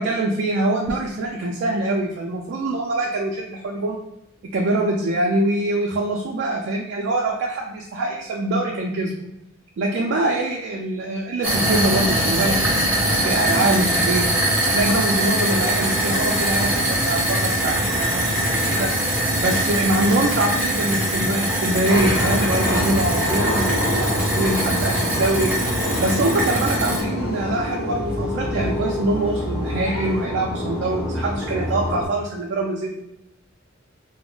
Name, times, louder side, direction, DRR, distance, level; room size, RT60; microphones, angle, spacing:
voice 1, 0.0-4.0 4.5-9.1 9.8-14.3 14.7-32.9, right 2 dB, 60° right, -1 dB, 0.3 m, -24 dB
sound 1, 11.4-27.0, right 1 dB, 10° right, 0.7 m, -22 dB
Crying sobbing, 21.3-21.8 22.2-22.4 22.9-23.0 23.2-23.7 24.2-24.3 25.1-25.9 26.2-26.4 26.8-26.9 27.3-27.4 28.2-28.8 29.1-29.4 29.8-30.3, left 1 dB, 30° left, 0.4 m, -39 dB
sound 2, 21.9-32.1, left 1 dB, 45° left, 1.0 m, -26 dB
2.2 x 2.0 x 3.7 m, 0.88 s
head